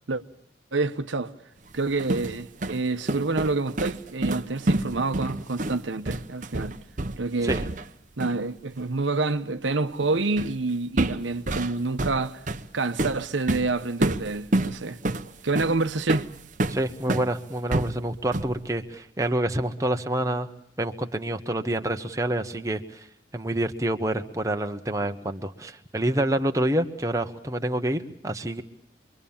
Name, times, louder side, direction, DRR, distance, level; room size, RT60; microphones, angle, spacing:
voice 1, 0.7-1.3 1.7-6.8 7.2-7.6 8.2-12.4 12.7-15.0 15.4-16.3 17.1-17.3, right 3 dB, 85° right, 1.1 m, -27 dB
sound 1, 1.7-8.4 10.4-10.6 11.0-17.3 17.7-18.6, right 2 dB, 40° right, 0.9 m, -28 dB
voice 2, 16.7-20.5 20.8-23.1 23.3-28.6, right 1 dB, 15° right, 1.1 m, -27 dB
27.0 x 23.0 x 7.2 m
head